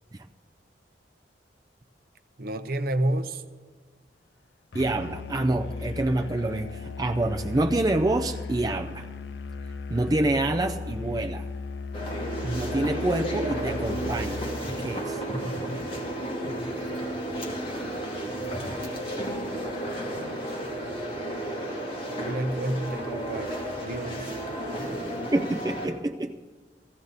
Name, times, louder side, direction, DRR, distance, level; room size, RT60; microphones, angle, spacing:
voice 1, 2.4-3.4 22.1-24.3, right 1 dB, 55° right, 10 dB, 0.7 m, -30 dB
Musical instrument, 4.7-14.7, left 4 dB, 70° left, 0.5 m, -36 dB
voice 2, 4.7-9.1 9.9-11.5 12.4-14.5 14.8-15.2 25.3-26.4, right 2 dB, 20° right, 5 dB, 0.4 m, -27 dB
sound 1, 11.9-25.9, right 1 dB, 30° left, 2.4 m, -32 dB
16.0 x 16.0 x 4.0 m, 1.4 s
head